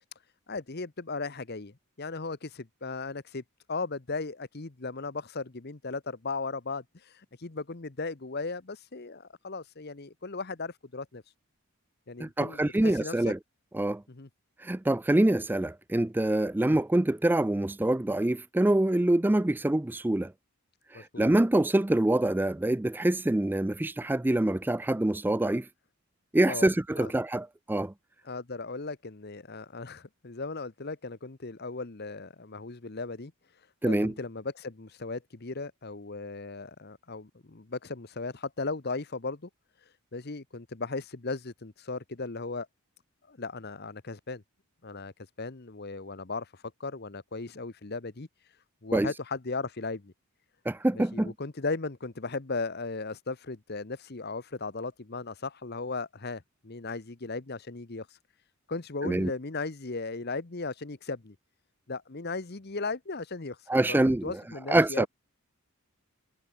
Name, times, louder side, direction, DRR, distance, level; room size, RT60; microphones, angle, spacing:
voice 1, 0.5-3.4 3.7-11.2 12.1-13.3 14.1-14.3 20.9-21.3 26.5-26.7 27.0-27.1 28.2-33.3 33.9-39.5 40.1-42.7 43.3-44.4 44.8-45.1 45.4-48.3 48.8-50.1 50.9-58.1 58.7-61.4 61.9-63.6 63.9-65.1, left 3 dB, 45° left, 1.0 m, -37 dB
voice 2, 12.2-13.4 13.7-14.0 14.6-20.3 20.9-25.7 26.3-27.9 33.8-34.1 48.9-49.1 50.7-51.3 59.0-59.3 63.7-64.3 64.7-65.1, right 1 dB, 10° right, 0.3 m, -25 dB
head